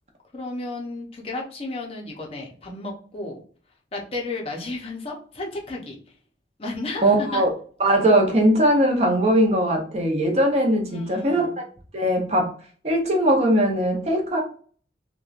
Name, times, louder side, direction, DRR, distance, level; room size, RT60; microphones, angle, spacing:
voice 1, 0.3-3.4 3.9-6.0 6.6-7.4 10.9-11.6, left 2 dB, 35° left, -1 dB, 0.5 m, -33 dB
voice 2, 7.0-7.5 7.8-11.5 11.9-12.5 12.8-14.4, right 1 dB, 35° right, 1 dB, 0.6 m, -20 dB
2.9 x 2.2 x 2.3 m, 0.43 s
head